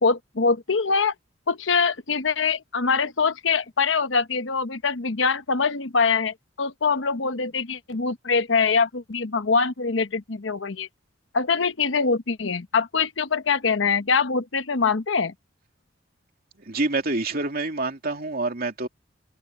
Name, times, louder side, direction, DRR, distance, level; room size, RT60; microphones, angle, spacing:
voice 1, 0.0-1.1 1.5-10.9 11.3-15.3, left 5 dB, 70° left, 1.0 m, -23 dB
voice 2, 16.7-18.9, right 2 dB, 50° right, 2.8 m, -27 dB
head